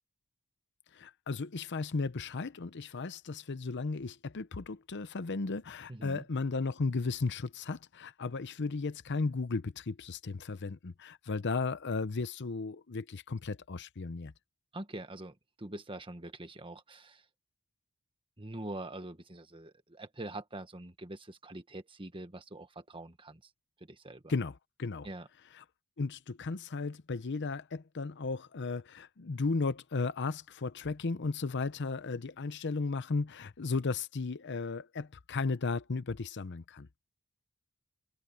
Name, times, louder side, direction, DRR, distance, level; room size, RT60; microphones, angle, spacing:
voice 1, 0.9-14.3 24.3-25.1 26.0-36.9, left 4 dB, 55° left, 0.7 m, -35 dB
voice 2, 5.9-6.2 14.7-17.2 18.4-23.5 23.8-24.3 25.0-25.3, right 1 dB, 25° right, 1.5 m, -44 dB
head